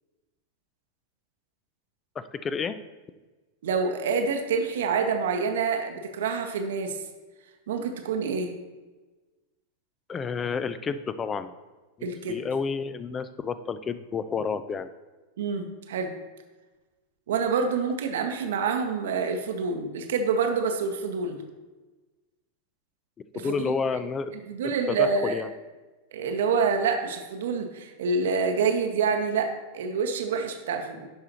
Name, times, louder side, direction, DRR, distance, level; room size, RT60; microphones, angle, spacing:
voice 1, 2.2-2.8 10.1-11.5 12.0-14.9 23.3-24.3 24.6-25.5, left 5 dB, 20° left, 13 dB, 0.4 m, -30 dB
voice 2, 3.6-7.0 7.7-8.5 12.0-12.4 15.4-16.1 17.3-21.4 23.3-23.8 24.5-25.4 26.1-31.1, right 5 dB, 60° right, 5 dB, 0.8 m, -27 dB
11.0 x 4.8 x 2.9 m, 1.2 s
figure-of-eight pair, 90°, 0 cm